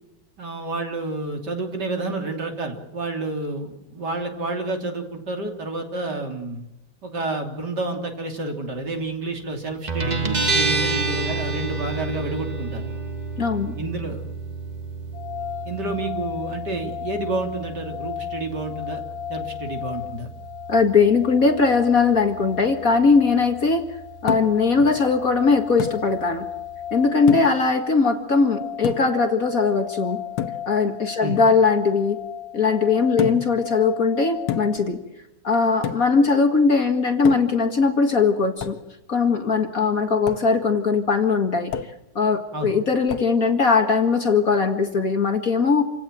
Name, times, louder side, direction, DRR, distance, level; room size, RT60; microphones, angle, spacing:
voice 1, 0.4-6.6 7.0-12.9 13.8-14.2 15.7-19.0 19.3-20.3 31.2-31.4 33.2-33.3 42.5-42.7, right 2 dB, 50° right, 4 dB, 3.7 m, -29 dB
Guitar, 9.9-27.1, right 3 dB, 20° right, 1.5 m, -31 dB
voice 2, 13.4-13.8 20.7-23.8 24.2-26.4 26.9-30.2 30.7-32.2 32.5-35.0 35.4-38.8 39.1-41.7 42.2-45.8, left 4 dB, 40° left, 5 dB, 2.3 m, -20 dB
sound 1, 15.1-34.8, left 11 dB, 70° left, 3.1 m, -36 dB
sound 2, 24.3-24.7 25.8-26.1 27.3-27.7 28.8-29.2 30.4-30.7 33.2-33.6 34.5-34.9 35.8-36.2 37.3-37.7 38.6-38.9 40.3-40.5 41.7-42.1 43.1-43.4, left 10 dB, 90° left, 1.9 m, -29 dB
28.0 x 17.0 x 7.6 m, 0.96 s
omnidirectional pair, 2.3 m